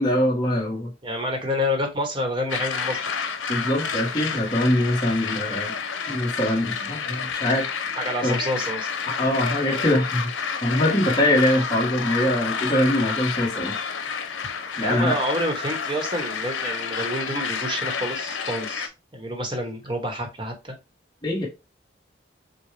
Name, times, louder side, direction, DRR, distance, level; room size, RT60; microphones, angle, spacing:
voice 1, 0.0-0.9 3.5-5.7 6.1-7.7 8.2-8.6 9.2-10.3 10.6-13.7 14.8-15.2 21.2-21.5, left 1 dB, 20° left, 1.2 m, -23 dB
voice 2, 1.0-3.1 8.0-8.9 14.8-20.7, equal, 25° right, 1.1 m, -28 dB
sound 1, 2.5-18.9, left 6 dB, 85° left, 0.7 m, -30 dB
6.7 x 2.2 x 3.3 m
head